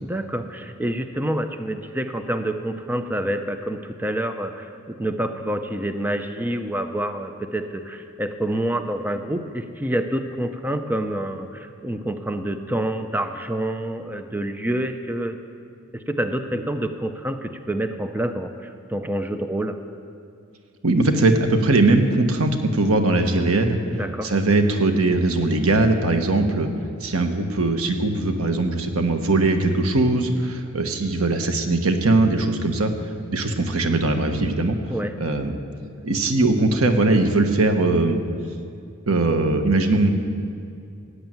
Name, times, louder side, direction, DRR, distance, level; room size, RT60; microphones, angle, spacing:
voice 1, 0.0-15.4 15.9-19.8 23.9-24.3 34.9-35.1, right 1 dB, 10° right, 7 dB, 0.6 m, -27 dB
voice 2, 20.8-23.8 24.2-26.7 27.0-32.9 33.3-34.8 35.2-35.5 36.0-38.2 39.1-40.1, right 2 dB, 80° right, 6 dB, 1.4 m, -20 dB
17.0 x 8.1 x 9.1 m, 2.4 s
head